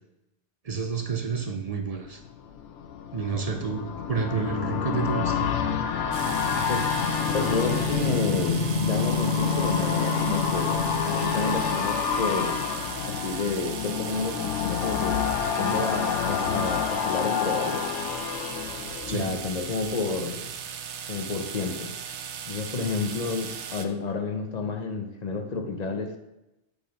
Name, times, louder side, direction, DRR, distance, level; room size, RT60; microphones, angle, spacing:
voice 1, 0.6-2.2 3.1-5.5 19.1-19.3, right 5 dB, 45° right, 4 dB, 0.5 m, -30 dB
sound 1, 2.1-19.9 20.2-20.3, left 7 dB, 90° left, 0.9 m, -29 dB
sound 2, 5.4-11.8, left 4 dB, 65° left, 1.3 m, -29 dB
sound 3, 6.1-23.9, right 7 dB, 75° right, 0.9 m, -38 dB
voice 2, 6.7-7.0 7.3-18.0 19.1-20.5 21.1-22.0 22.5-26.2, left 4 dB, 40° left, 5 dB, 0.7 m, -30 dB
6.9 x 3.8 x 5.2 m, 0.93 s
omnidirectional pair, 1.2 m